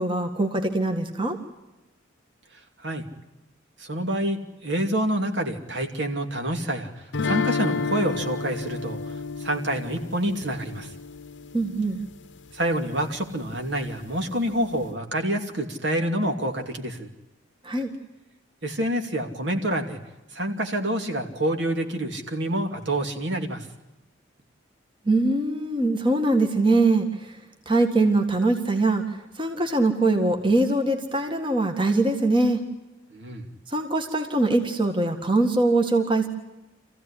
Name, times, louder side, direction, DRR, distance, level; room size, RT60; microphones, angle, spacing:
voice 1, 0.0-1.4 11.5-12.0 17.6-17.9 25.1-27.4 27.7-32.6 33.7-36.3, right 2 dB, 25° right, 4 dB, 1.9 m, -22 dB
voice 2, 3.8-10.9 12.5-17.1 18.6-20.0 20.3-23.7 33.1-33.5, right 1 dB, 65° right, 4 dB, 2.7 m, -27 dB
sound 1, 7.1-12.1, left 4 dB, 70° left, 0.8 m, -31 dB
27.0 x 15.5 x 10.0 m, 1.0 s
head